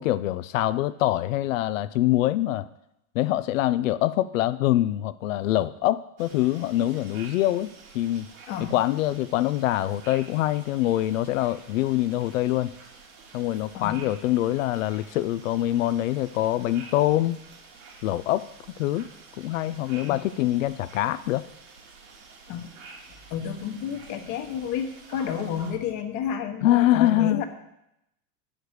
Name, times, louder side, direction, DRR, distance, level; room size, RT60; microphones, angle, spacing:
voice 1, 0.0-2.7 3.1-8.3 8.7-12.7 13.3-17.4 18.0-18.5 18.8-19.1 19.4-21.5 26.6-27.4, left 14 dB, 60° left, 15 dB, 0.5 m, -24 dB
sound 1, 6.2-25.7, right 4 dB, 65° right, 2.5 m, -49 dB
voice 2, 23.3-27.4, left 8 dB, 40° left, 6 dB, 1.1 m, -31 dB
8.9 x 5.1 x 6.3 m, 0.83 s
figure-of-eight pair, 90°, 46 cm